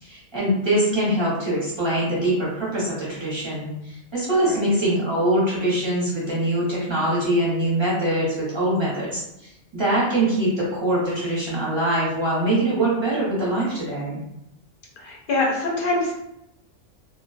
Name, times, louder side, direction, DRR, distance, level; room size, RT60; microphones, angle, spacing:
voice 1, 0.0-14.2, right 1 dB, 25° right, -7 dB, 0.7 m, -23 dB
voice 2, 15.0-16.2, left 2 dB, 60° left, -2 dB, 0.6 m, -24 dB
2.3 x 2.2 x 2.4 m, 0.84 s
omnidirectional pair, 1.3 m